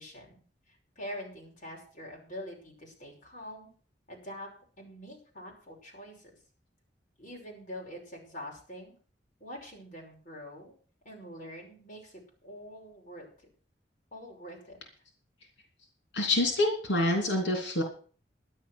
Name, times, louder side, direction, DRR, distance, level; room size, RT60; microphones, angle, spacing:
voice 1, 0.0-3.7 4.1-6.3 7.2-8.9 9.4-10.7 11.0-13.5 14.1-14.8, equal, 45° left, -1 dB, 5.6 m, -45 dB
voice 2, 16.1-17.8, left 1 dB, 90° left, 2 dB, 3.0 m, -26 dB
12.0 x 10.5 x 6.2 m, 0.43 s
head